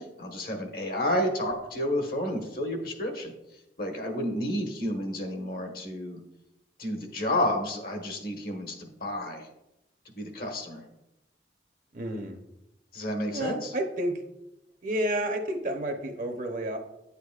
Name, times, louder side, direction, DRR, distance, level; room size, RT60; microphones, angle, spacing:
voice 1, 0.0-3.3 3.8-6.2 6.8-9.5 10.1-10.8 12.9-13.7, left 1 dB, 55° left, 3 dB, 1.4 m, -31 dB
voice 2, 11.9-12.4 13.3-14.2 14.8-16.8, right 1 dB, 45° right, 4 dB, 0.8 m, -30 dB
9.8 x 8.2 x 2.4 m, 0.89 s
head